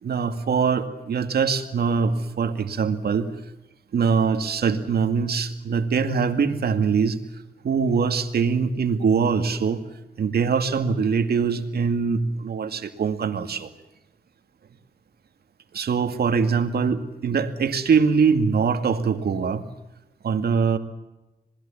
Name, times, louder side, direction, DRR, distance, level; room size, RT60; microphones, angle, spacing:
voice 1, 0.0-3.3 3.9-7.2 7.6-9.8 10.2-13.7 15.7-19.6 20.2-20.8, right 5 dB, 75° right, 7 dB, 2.3 m, -23 dB
27.0 x 20.0 x 7.2 m, 0.99 s
wide cardioid pair, 110°, 17 cm